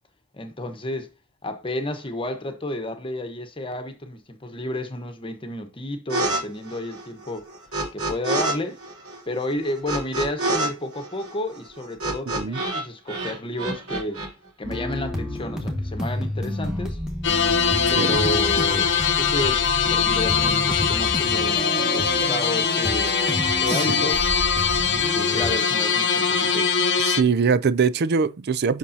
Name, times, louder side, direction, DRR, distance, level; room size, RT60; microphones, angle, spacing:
voice 1, 0.3-1.1 1.4-7.5 7.9-8.8 9.3-14.2 14.6-17.0 17.9-24.2 25.1-26.8, left 1 dB, 25° left, 1.1 m, -31 dB
sound 1, 6.1-6.4 6.7-8.5 8.8-12.8 13.1-14.3, right 2 dB, 80° right, 4.2 m, -27 dB
voice 2, 12.3-12.6 18.0-18.2 23.7-24.0 27.0-28.8, right 5 dB, 50° right, 0.4 m, -23 dB
sound 2, 14.6-25.5, left 1 dB, 5° right, 1.6 m, -30 dB
sound 3, 17.2-27.2, left 6 dB, 55° left, 0.8 m, -22 dB
8.4 x 6.1 x 2.8 m
head